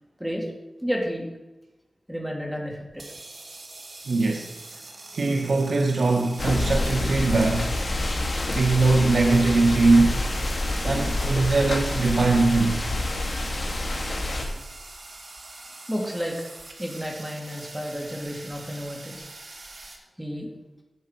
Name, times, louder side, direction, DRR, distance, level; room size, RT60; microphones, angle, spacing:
voice 1, 0.8-1.3 2.1-3.0 14.5-14.6 15.9-16.3 16.8-19.2 20.2-20.5, equal, 5° right, -1 dB, 2.7 m, -31 dB
sound 1, 2.9-20.0, right 2 dB, 65° right, 2.1 m, -43 dB
voice 2, 4.1-4.5 5.1-7.7 8.5-10.2 10.8-12.8, right 3 dB, 85° right, 1 dB, 1.0 m, -21 dB
sound 2, 6.4-14.5, left 1 dB, 50° left, 2.4 m, -27 dB
12.5 x 8.2 x 4.6 m, 1.0 s
wide cardioid pair, 90°, 0 cm